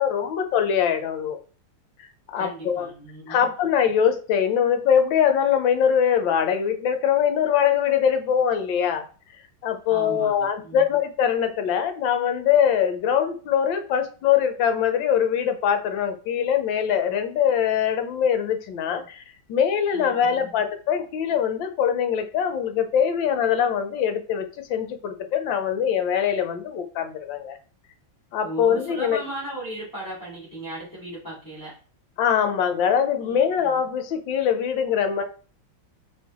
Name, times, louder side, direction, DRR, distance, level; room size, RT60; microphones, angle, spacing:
voice 1, 0.0-1.4 2.3-2.9 3.3-9.1 9.6-19.2 19.5-27.6 28.3-29.2 32.2-35.2, left 8 dB, 75° left, 7 dB, 1.4 m, -22 dB
voice 2, 2.4-3.5 9.9-10.8 18.9-19.0 19.9-20.5 28.4-31.7 33.3-33.8, right 1 dB, 10° left, -7 dB, 2.0 m, -37 dB
4.4 x 3.3 x 3.6 m, 0.37 s
omnidirectional pair, 2.1 m